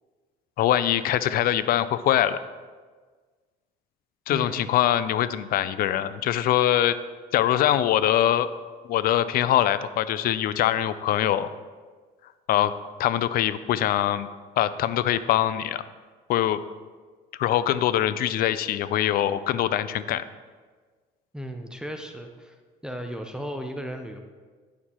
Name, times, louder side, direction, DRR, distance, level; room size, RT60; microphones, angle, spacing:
voice 1, 0.6-2.4 4.3-7.0 7.3-8.5 8.9-11.5 12.5-12.7 13.0-14.3 14.6-15.8 16.3-16.6 17.4-20.2, left 12 dB, 60° left, 14 dB, 0.4 m, -23 dB
voice 2, 4.3-4.7 21.3-22.5 22.8-24.2, equal, 5° right, 4 dB, 0.5 m, -35 dB
9.1 x 6.6 x 2.9 m, 1.5 s
cardioid pair, 110°, 17 cm